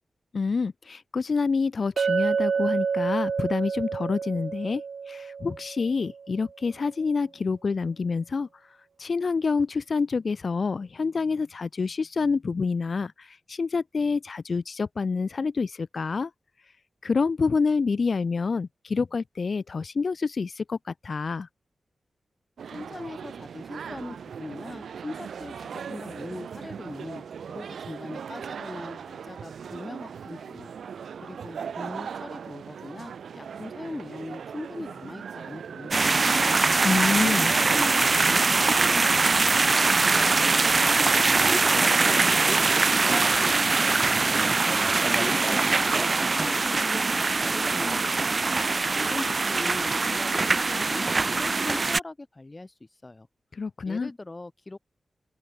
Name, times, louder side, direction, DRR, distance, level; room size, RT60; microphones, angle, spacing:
voice 1, 0.3-8.5 9.0-16.3 17.0-21.5 36.8-37.5 53.5-54.1, left 4 dB, 55° left, 1.7 m, -27 dB
Chink clink, 2.0-6.2, right 6 dB, 70° right, 1.6 m, -28 dB
sound 1, 22.6-38.1, right 7 dB, 90° right, 2.4 m, -39 dB
voice 2, 22.7-30.7 31.2-36.6 37.2-41.1 41.5-42.8 43.0-44.8 45.2-48.4 49.0-52.7 53.0-53.3 53.8-54.8, left 2 dB, 25° left, 2.0 m, -40 dB
sound 2, 35.9-52.0, right 3 dB, 45° right, 0.5 m, -22 dB
open air
cardioid pair, 80°, 0 cm